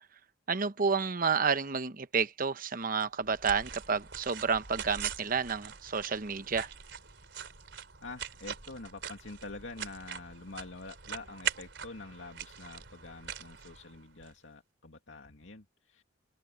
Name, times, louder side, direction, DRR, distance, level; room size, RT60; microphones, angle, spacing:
voice 1, 0.5-6.7, right 5 dB, 45° right, 0.9 m, -30 dB
sound 1, 3.0-14.3, right 8 dB, 65° right, 4.0 m, -42 dB
voice 2, 8.0-16.0, left 3 dB, 80° left, 2.3 m, -46 dB
head